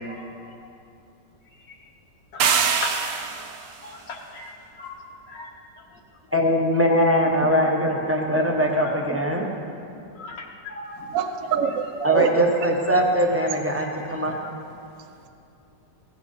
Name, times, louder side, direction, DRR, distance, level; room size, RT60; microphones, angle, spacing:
sound 1, 2.4-3.7, right 7 dB, 75° right, 1.4 m, -23 dB
voice 1, 3.8-4.5 4.8-5.0 5.3-5.5 10.2-10.4 10.7-11.0, left 4 dB, 85° left, 0 dB, 1.9 m, -36 dB
voice 2, 6.3-9.5 12.0-14.3, equal, 10° right, 0 dB, 0.8 m, -21 dB
voice 3, 11.1-12.5, right 7 dB, 60° right, 7 dB, 1.0 m, -24 dB
16.0 x 8.3 x 5.6 m, 2.6 s
omnidirectional pair, 1.9 m